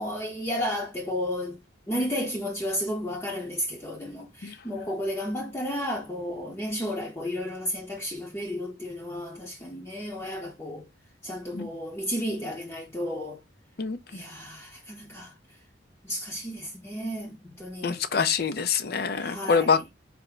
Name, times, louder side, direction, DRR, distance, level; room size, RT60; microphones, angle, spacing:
voice 1, 0.0-1.6 1.9-10.9 11.2-13.4 14.1-15.3 16.0-18.0 19.2-19.8, equal, 15° left, 0.7 m, -33 dB
voice 2, 17.8-19.9, left 5 dB, 50° left, 0.5 m, -25 dB
4.4 x 2.1 x 3.7 m
head